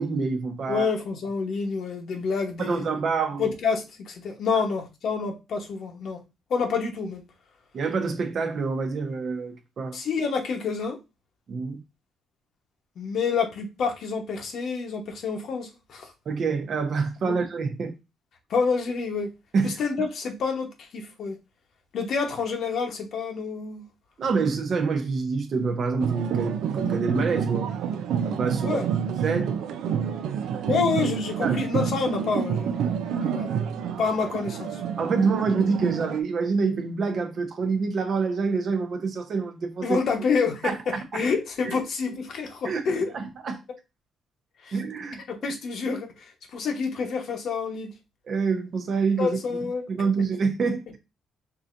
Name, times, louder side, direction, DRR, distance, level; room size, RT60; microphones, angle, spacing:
voice 1, 0.0-0.9 2.6-3.5 7.7-10.0 11.5-11.8 16.3-17.9 19.5-19.8 24.2-27.7 28.2-28.8 29.2-29.6 30.5-30.8 31.4-31.6 35.0-40.0 40.6-41.2 41.6-41.8 42.6-42.8 43.1-43.6 44.7-45.2 48.3-49.4 49.9-51.0, right 4 dB, 55° right, 0.8 m, -26 dB
voice 2, 0.7-2.9 3.4-6.2 6.5-7.2 9.9-11.0 13.0-16.1 17.2-17.4 18.5-19.3 19.6-21.4 21.9-23.8 28.6-28.9 30.7-32.7 33.2-33.5 34.0-34.8 39.8-43.1 44.6-44.8 45.4-47.9 49.2-49.8, left 5 dB, 65° left, 1.0 m, -28 dB
sound 1, 26.0-36.2, right 7 dB, 80° right, 0.4 m, -28 dB
4.7 x 2.8 x 2.5 m
cardioid pair, 90°, 0 cm